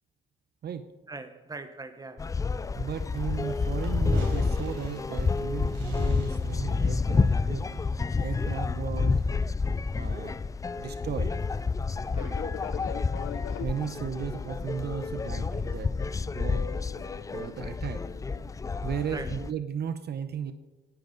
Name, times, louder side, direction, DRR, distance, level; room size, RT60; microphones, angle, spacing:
voice 1, 1.1-2.3 12.1-12.9 19.1-19.3, right 3 dB, 20° right, 1.2 m, -42 dB
sound 1, 2.2-19.5, left 4 dB, 15° left, 0.3 m, -29 dB
voice 2, 2.7-7.8 8.2-9.2 9.9-10.3 10.8-11.3 13.6-15.9 16.3-16.6 17.3-18.1 18.8-20.5, right 8 dB, 55° right, 0.8 m, -35 dB
Fireworks, 3.1-8.4, right 3 dB, 90° right, 4.0 m, -44 dB
Fixed-wing aircraft airplane, 12.1-18.5, left 11 dB, 85° left, 0.8 m, -43 dB
18.5 x 11.0 x 4.0 m
cardioid pair, 90°, 20 cm